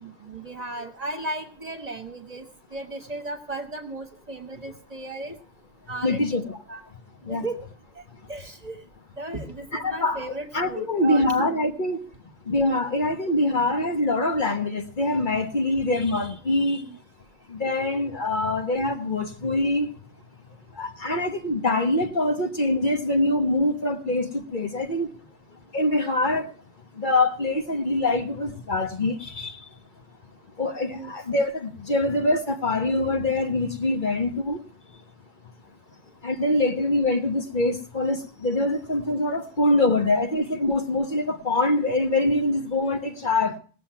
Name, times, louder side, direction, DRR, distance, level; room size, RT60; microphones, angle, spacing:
voice 1, 0.0-2.5 2.7-5.4 5.9-6.4 6.7-6.8 7.3-7.6 8.0-8.1 8.3-8.8 9.2-11.7 15.8-16.1 16.8-17.0 30.9-31.1, right 2 dB, 35° right, 6 dB, 1.5 m, -35 dB
voice 2, 6.0-6.6 7.3-7.4 9.7-10.2 10.5-12.0 12.5-16.8 17.5-19.9 20.8-25.1 25.7-26.5 27.0-29.6 30.6-34.6 36.2-43.5, left 2 dB, 45° left, 5 dB, 1.4 m, -24 dB
18.5 x 7.6 x 5.8 m, 0.41 s
omnidirectional pair, 1.1 m